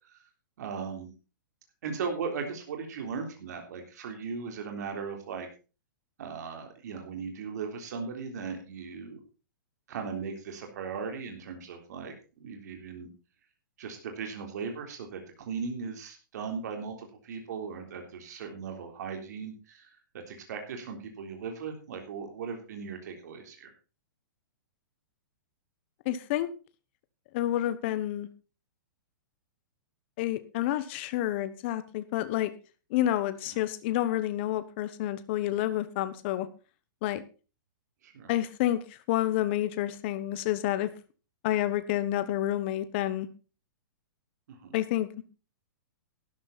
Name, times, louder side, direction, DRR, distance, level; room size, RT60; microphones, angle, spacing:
voice 1, 0.6-1.1 1.8-5.5 6.2-9.2 9.9-13.1 13.8-19.9 20.3-23.7 33.5-33.6 38.0-38.3 44.5-44.8, right 5 dB, 55° right, 4 dB, 3.6 m, -38 dB
voice 2, 26.0-26.5 27.3-28.3 30.2-32.5 32.9-36.5 37.0-37.2 38.3-40.9 41.4-43.3 44.7-45.1, left 13 dB, 35° left, 12 dB, 1.1 m, -29 dB
12.5 x 11.0 x 4.1 m, 0.33 s
hypercardioid pair, 170°, 11 cm